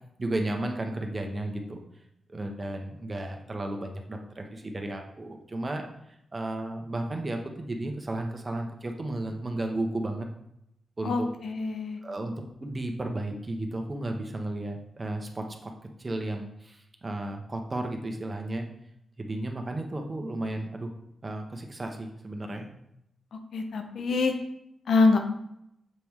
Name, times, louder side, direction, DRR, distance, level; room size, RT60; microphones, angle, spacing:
voice 1, 0.2-1.8 2.3-5.8 6.3-10.3 11.0-11.3 12.0-12.3 12.6-15.7 16.0-18.7 19.2-20.9 21.2-22.7, right 1 dB, 35° right, 3 dB, 1.1 m, -33 dB
voice 2, 11.0-12.0 23.5-24.3 24.9-25.2, left 3 dB, 75° left, 5 dB, 0.8 m, -25 dB
6.9 x 3.5 x 4.7 m, 0.78 s
cardioid pair, 65°, 0 cm